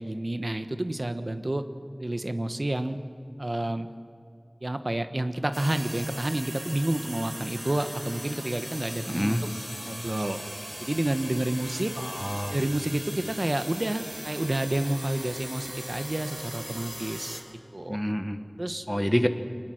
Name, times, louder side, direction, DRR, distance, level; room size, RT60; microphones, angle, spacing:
voice 1, 0.0-1.6 2.0-3.0 3.4-3.9 4.6-9.4 9.8-10.4 10.8-11.9 12.5-17.4 17.7-18.0 18.6-18.8, right 1 dB, 60° right, 9 dB, 1.1 m, -29 dB
sound 1, 5.5-17.4, equal, 25° right, 3.9 m, -39 dB
voice 2, 9.1-9.4 12.0-12.6 17.9-18.4 18.9-19.3, equal, 5° left, 8 dB, 1.5 m, -27 dB
24.5 x 20.5 x 6.4 m, 2.4 s
wide cardioid pair, 40°, 0 cm